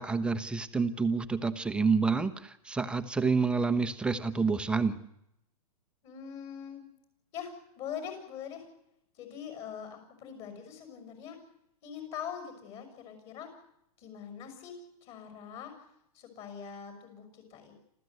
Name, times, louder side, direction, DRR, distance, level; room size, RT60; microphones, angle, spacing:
voice 1, 0.0-5.0, right 4 dB, 5° right, 9 dB, 1.0 m, -28 dB
voice 2, 6.0-6.8 7.3-8.7 9.1-11.4 11.8-13.5 14.0-15.9 16.1-17.7, left 8 dB, 35° left, 7 dB, 6.5 m, -43 dB
27.5 x 14.5 x 8.0 m, 0.79 s
hypercardioid pair, 150°, 19 cm